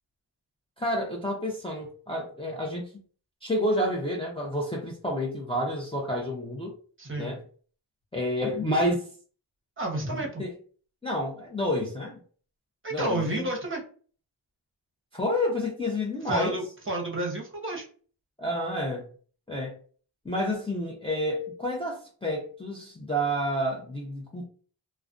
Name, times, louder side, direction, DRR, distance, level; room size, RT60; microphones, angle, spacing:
voice 1, 0.8-2.9 3.4-6.7 7.2-7.4 8.1-9.0 10.1-10.5 11.0-12.2 12.9-13.5 15.1-16.6 18.4-19.0 19.5-19.7 20.2-24.5, equal, 10° left, 0.6 m, -29 dB
voice 2, 7.0-7.3 9.8-10.4 12.8-13.8 16.3-17.9, right 1 dB, 25° right, 0.9 m, -31 dB
2.3 x 2.2 x 2.5 m
cardioid pair, 60°, 48 cm